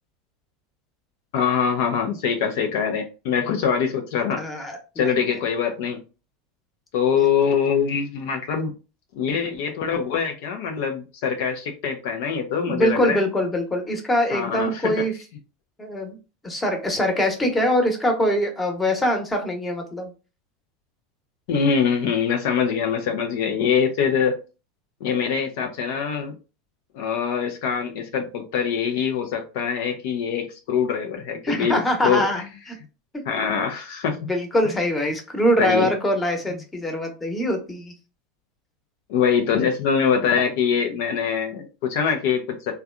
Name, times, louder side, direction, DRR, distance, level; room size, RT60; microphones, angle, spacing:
voice 1, 1.3-4.4 5.0-6.0 6.9-8.7 9.2-13.2 14.3-14.9 21.5-24.3 25.0-26.3 26.9-32.4 33.3-34.2 35.6-35.9 39.1-42.7, left 7 dB, 65° left, 0.5 m, -23 dB
voice 2, 4.4-5.1 12.7-15.1 15.8-16.2 16.4-20.1 31.4-32.4 33.1-33.2 34.2-37.9, equal, 15° left, 1.0 m, -23 dB
3.4 x 2.2 x 2.4 m
hypercardioid pair, 85°, 0 cm